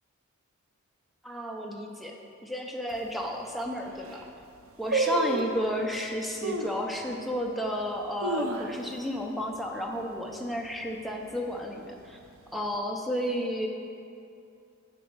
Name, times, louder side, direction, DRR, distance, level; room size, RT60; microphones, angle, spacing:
voice 1, 1.2-2.1 2.4-4.2 4.8-12.2 12.5-13.7, equal, ahead, 0 dB, 0.6 m, -32 dB
sound 1, 2.9-3.0 3.6-3.7 3.9-4.3 4.9-5.7 6.4-6.8 7.3-7.4 8.0-9.1 9.4-9.5 9.8-10.2 10.6-11.0 11.6-12.3 12.6-12.7, right 3 dB, 70° right, 0.6 m, -30 dB
8.4 x 6.0 x 4.6 m, 2.5 s
head